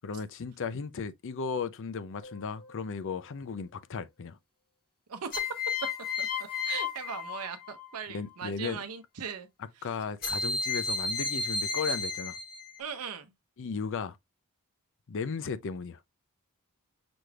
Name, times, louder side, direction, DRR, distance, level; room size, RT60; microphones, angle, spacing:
voice 1, 0.0-4.4 8.1-8.8 9.6-12.4 13.6-14.2 15.1-16.0, left 5 dB, 60° left, 0.5 m, -35 dB
sound 1, 2.2-2.8 5.3-8.0 10.2-12.8, left 4 dB, 45° left, 1.5 m, -33 dB
voice 2, 6.7-9.5 12.8-13.3, right 7 dB, 80° right, 0.7 m, -39 dB
6.0 x 3.3 x 2.3 m
head